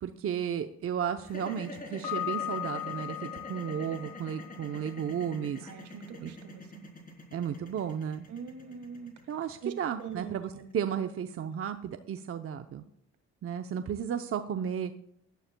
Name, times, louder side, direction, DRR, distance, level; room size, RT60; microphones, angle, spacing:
voice 1, 0.0-5.7 6.2-6.3 7.3-8.3 9.3-12.8 13.4-15.0, right 8 dB, 50° right, 8 dB, 0.7 m, -34 dB
sound 1, 1.2-11.4, left 2 dB, 30° left, 3.5 m, -45 dB
Piano, 2.0-4.9, left 13 dB, 70° left, 2.4 m, -37 dB
voice 2, 5.6-6.9 8.3-9.1 9.6-9.7 10.0-10.7, right 7 dB, 75° right, 7 dB, 1.7 m, -43 dB
17.5 x 11.5 x 2.2 m, 0.75 s
cardioid pair, 90°, 30 cm